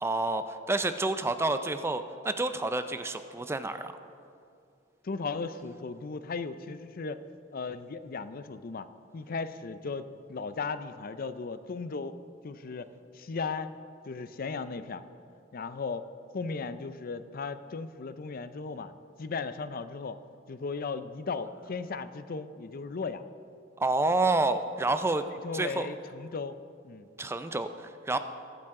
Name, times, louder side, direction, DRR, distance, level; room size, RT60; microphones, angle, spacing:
voice 1, 0.0-3.9 23.8-25.3 25.5-25.9 27.2-28.2, right 2 dB, 15° right, 10 dB, 0.4 m, -29 dB
voice 2, 5.0-7.2 7.5-8.9 9.1-12.1 12.4-13.7 14.1-15.0 15.5-16.1 16.3-18.9 19.2-20.2 20.5-23.2 25.4-26.6 26.8-27.1, left 4 dB, 50° left, 12 dB, 0.5 m, -36 dB
22.0 x 8.8 x 3.7 m, 2.4 s
head